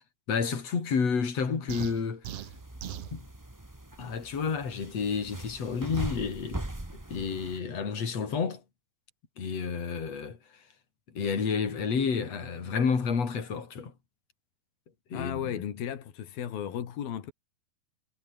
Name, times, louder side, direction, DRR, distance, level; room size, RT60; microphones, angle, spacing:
voice 1, 0.3-2.3 3.1-3.2 4.0-6.6 7.1-8.6 9.4-10.4 11.1-13.9 15.1-15.6, left 5 dB, 45° left, 4.9 m, -30 dB
sound 1, 1.7-3.1, right 11 dB, 60° right, 1.6 m, -39 dB
sound 2, 2.4-7.6, right 1 dB, 15° right, 0.6 m, -40 dB
voice 2, 15.1-17.3, left 9 dB, 75° left, 4.3 m, -35 dB
omnidirectional pair, 4.2 m